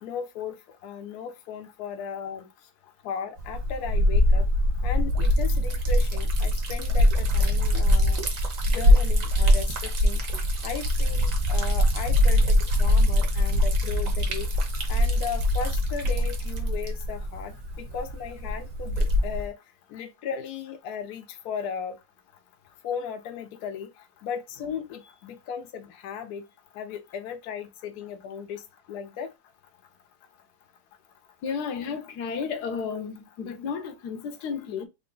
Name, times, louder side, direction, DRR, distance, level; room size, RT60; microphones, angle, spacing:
voice 1, 0.0-2.5 3.0-4.5 4.8-10.2 10.6-14.5 14.9-19.6 19.9-22.0 22.8-23.9 24.2-26.4 26.7-29.3, left 7 dB, 90° left, 0.8 m, -36 dB
Liquid, 3.4-19.5, left 1 dB, 60° right, 0.9 m, -23 dB
voice 2, 31.4-34.9, left 6 dB, 70° left, 1.0 m, -32 dB
3.8 x 2.2 x 3.8 m
omnidirectional pair, 2.4 m